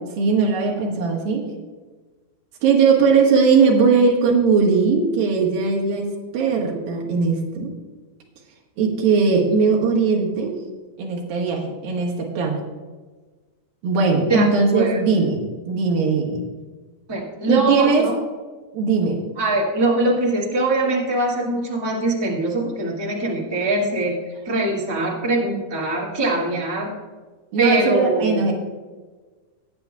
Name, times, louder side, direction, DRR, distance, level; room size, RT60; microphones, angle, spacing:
voice 1, 0.2-1.4 2.6-7.7 8.8-10.6 11.0-12.6 13.8-16.4 17.5-18.1 18.7-19.2 25.3-25.4 27.5-28.5, right 4 dB, 80° right, -2 dB, 3.3 m, -19 dB
voice 2, 17.1-18.1 19.4-24.2 24.4-26.9 27.6-28.4, right 2 dB, 10° right, -4 dB, 1.4 m, -22 dB
17.5 x 8.7 x 2.4 m, 1.3 s
omnidirectional pair, 4.1 m